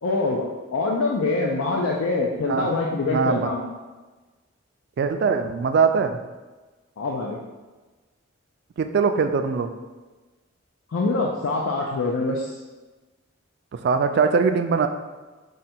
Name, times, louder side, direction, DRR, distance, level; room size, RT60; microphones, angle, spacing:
voice 1, 0.0-3.7 7.0-7.4 10.9-12.6, left 3 dB, 80° left, -1 dB, 0.4 m, -24 dB
voice 2, 3.1-3.5 5.0-6.2 8.8-9.7 13.8-14.9, right 5 dB, 55° right, 7 dB, 0.3 m, -21 dB
4.9 x 2.2 x 4.2 m, 1.2 s
head